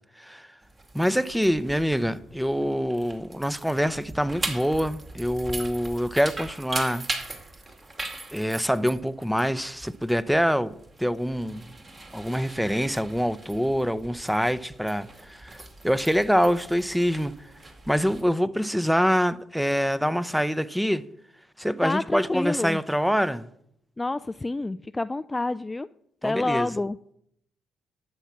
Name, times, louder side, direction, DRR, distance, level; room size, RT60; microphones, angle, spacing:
voice 1, 0.2-0.5 0.9-7.0 8.3-11.7 12.1-15.6 15.8-17.3 17.9-21.0 21.6-23.5 26.2-26.7, equal, ahead, 0.7 m, -25 dB
sound 1, 0.6-18.2, right 2 dB, 35° right, 2.3 m, -40 dB
voice 2, 21.8-22.8 24.0-25.9 26.2-27.0, left 2 dB, 20° left, 0.3 m, -28 dB
11.5 x 7.4 x 5.9 m
supercardioid pair, 65°, 0 cm